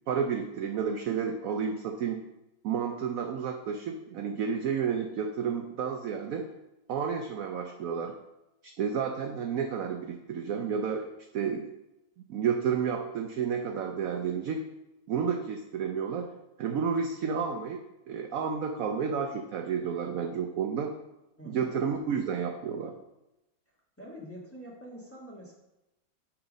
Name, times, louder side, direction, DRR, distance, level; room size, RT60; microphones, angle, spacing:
voice 1, 0.1-2.2 2.6-6.5 6.9-8.1 8.8-11.1 11.3-11.7 12.3-14.6 15.1-16.3 16.6-20.9 21.4-22.9, right 6 dB, 70° right, 4 dB, 0.8 m, -31 dB
voice 2, 21.4-21.7 24.0-25.6, equal, 10° left, -4 dB, 1.3 m, -45 dB
8.9 x 3.7 x 5.1 m, 0.93 s
omnidirectional pair, 2.0 m